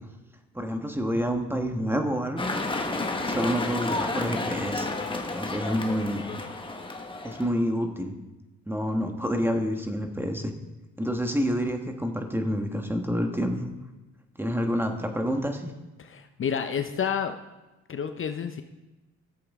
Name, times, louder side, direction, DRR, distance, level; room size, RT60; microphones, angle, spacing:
voice 1, 0.5-2.5 3.2-4.9 5.3-6.2 7.2-8.2 8.7-10.5 11.0-13.7 14.4-15.7, equal, 5° right, 5 dB, 1.3 m, -28 dB
sound 1, 2.4-7.5, left 2 dB, 15° left, 1.2 m, -31 dB
voice 2, 16.0-17.3 17.9-18.6, left 7 dB, 45° left, 8 dB, 0.7 m, -29 dB
14.5 x 7.7 x 3.6 m, 1.1 s
cardioid pair, 90°, 30 cm